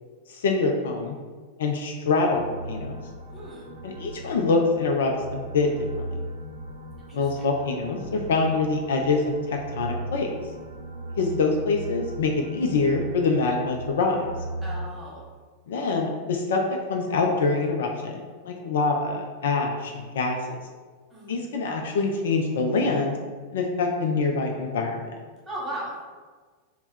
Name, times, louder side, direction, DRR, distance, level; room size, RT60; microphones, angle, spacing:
voice 1, 0.3-1.2 1.6-2.4 2.7-2.9 3.8-5.7 7.1-10.3 11.2-14.2 15.7-20.4 21.3-23.2 23.5-25.1, left 3 dB, 60° left, 2 dB, 0.4 m, -25 dB
sound 1, 2.3-14.9, right 1 dB, 70° right, 0.5 m, -37 dB
voice 2, 3.3-3.7 7.0-7.5 14.6-15.2 21.1-21.4 25.4-25.9, right 1 dB, 10° right, -6 dB, 1.3 m, -37 dB
3.3 x 2.1 x 4.3 m, 1.4 s
figure-of-eight pair, 90°, 0 cm